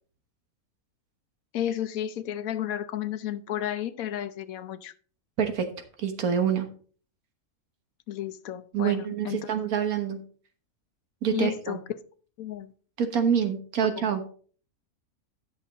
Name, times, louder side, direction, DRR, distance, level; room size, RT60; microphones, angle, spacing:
voice 1, 1.5-4.9 8.1-9.5 11.3-11.8 12.4-12.7 13.8-14.1, left 11 dB, 75° left, 13 dB, 1.1 m, -32 dB
voice 2, 5.4-5.7 6.0-6.7 8.7-10.2 11.2-11.8 13.0-14.2, right 7 dB, 85° right, 7 dB, 1.7 m, -26 dB
10.5 x 6.4 x 4.0 m, 0.44 s
omnidirectional pair, 1.5 m